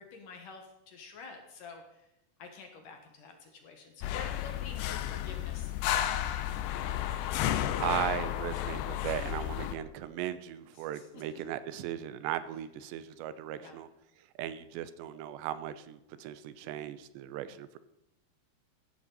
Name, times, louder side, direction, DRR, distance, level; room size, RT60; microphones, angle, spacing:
voice 1, 0.0-2.0 2.4-6.3 7.9-8.1 9.0-9.3 10.9-11.0 13.6-13.8, left 5 dB, 60° left, 4 dB, 2.6 m, -48 dB
sound 1, 4.0-9.8, left 12 dB, 85° left, 2.9 m, -32 dB
voice 2, 7.8-13.9 14.4-17.8, right 11 dB, 85° right, 13 dB, 3.0 m, -37 dB
15.5 x 12.5 x 4.1 m, 0.88 s
omnidirectional pair, 4.9 m